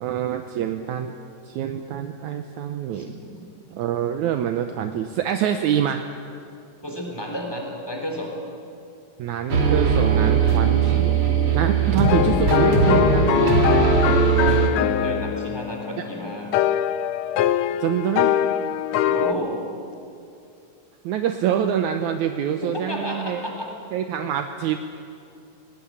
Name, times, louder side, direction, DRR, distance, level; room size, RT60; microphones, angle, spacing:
voice 1, 0.0-1.1 1.5-3.1 3.7-6.0 9.2-11.2 11.5-13.3 17.8-18.3 21.0-23.4 23.9-24.8, right 9 dB, 75° right, 7 dB, 2.0 m, -25 dB
voice 2, 2.9-3.4 6.8-8.3 14.5-16.6 19.1-19.6 22.6-23.7, equal, 5° left, 1 dB, 3.4 m, -31 dB
sound 1, 9.5-14.7, right 5 dB, 40° right, 2.6 m, -19 dB
sound 2, 12.0-19.3, left 11 dB, 85° left, 1.5 m, -23 dB
18.5 x 18.5 x 9.9 m, 2.5 s
omnidirectional pair, 3.8 m